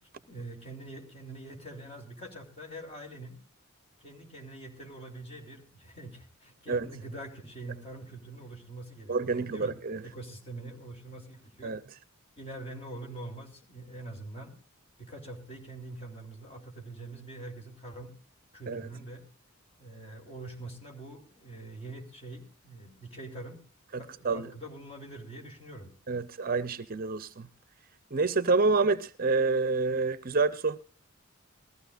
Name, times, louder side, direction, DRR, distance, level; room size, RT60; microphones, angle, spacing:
voice 1, 0.3-3.4 4.0-9.7 10.0-11.7 12.4-14.5 15.0-18.1 18.5-19.3 19.8-23.6 24.0-25.9, right 2 dB, 30° left, 3.4 m, -44 dB
voice 2, 9.1-10.0 11.6-11.8 18.7-18.9 23.9-24.5 26.1-27.5 28.1-30.8, right 3 dB, 45° right, 0.6 m, -28 dB
20.5 x 14.5 x 2.5 m
head